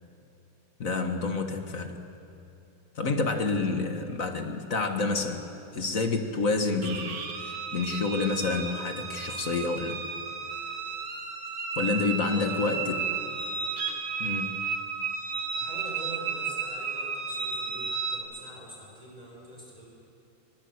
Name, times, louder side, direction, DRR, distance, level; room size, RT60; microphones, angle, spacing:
voice 1, 0.8-2.0 2.9-5.4 5.7-10.0 11.7-13.0 14.2-14.6, left 3 dB, 40° left, 5 dB, 1.6 m, -29 dB
sound 1, 6.8-18.2, right 5 dB, 85° right, 2.5 m, -33 dB
voice 2, 12.1-13.4 15.5-19.9, right 1 dB, 15° right, -3 dB, 5.8 m, -44 dB
21.0 x 20.5 x 8.0 m, 2.8 s
omnidirectional pair, 2.4 m